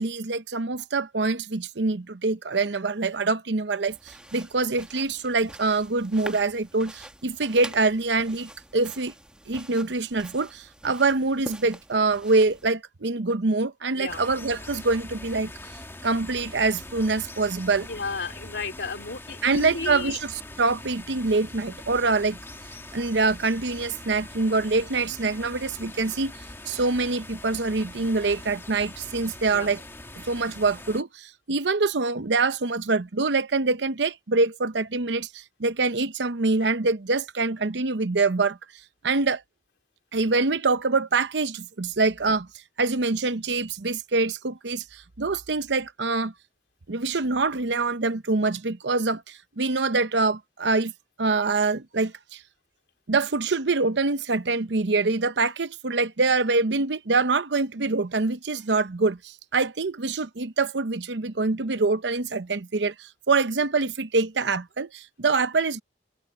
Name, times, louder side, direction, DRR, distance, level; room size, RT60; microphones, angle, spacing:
voice 1, 0.0-9.1 9.5-15.5 16.0-17.9 19.4-20.3 20.6-22.4 22.9-26.3 26.7-29.8 30.3-38.6 39.0-39.4 40.1-42.5 42.8-46.3 46.9-50.9 51.2-52.4 53.1-65.8, right 3 dB, 85° right, 0.8 m, -25 dB
sound 1, 3.9-12.7, right 1 dB, 5° right, 1.3 m, -45 dB
sound 2, 14.1-31.0, left 1 dB, 15° left, 2.0 m, -42 dB
voice 2, 17.9-20.2 29.5-29.7, left 4 dB, 80° left, 2.8 m, -33 dB
head